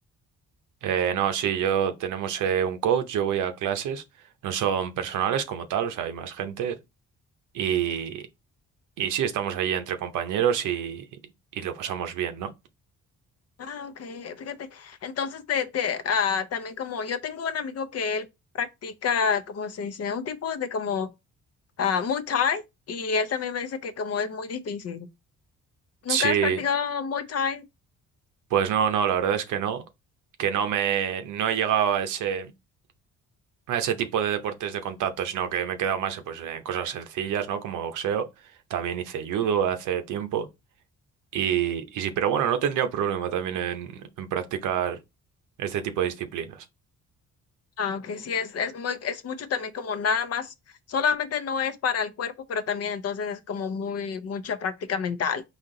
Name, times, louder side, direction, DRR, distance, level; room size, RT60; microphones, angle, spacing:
voice 1, 0.8-4.0 4.4-6.8 7.5-8.3 9.0-11.0 11.5-12.5 26.1-26.6 28.5-29.8 30.4-32.5 33.7-38.3 38.7-40.5 41.3-45.0 45.6-46.6, right 9 dB, 85° right, 0.8 m, -27 dB
voice 2, 13.6-18.3 18.5-21.1 21.8-25.1 26.0-27.6 47.8-50.5 50.9-55.4, left 6 dB, 55° left, 0.7 m, -29 dB
4.2 x 2.9 x 3.7 m
cardioid pair, 90°, 30 cm